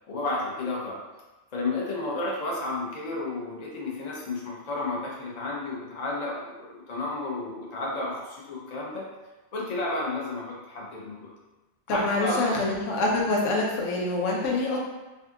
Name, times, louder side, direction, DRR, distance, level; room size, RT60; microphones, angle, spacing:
voice 1, 0.1-1.0 1.5-9.1 9.5-11.3 11.9-12.5, left 2 dB, 45° left, -4 dB, 0.6 m, -32 dB
voice 2, 11.9-14.8, left 2 dB, 85° left, -2 dB, 1.0 m, -25 dB
2.7 x 2.3 x 3.5 m, 1.1 s
omnidirectional pair, 1.2 m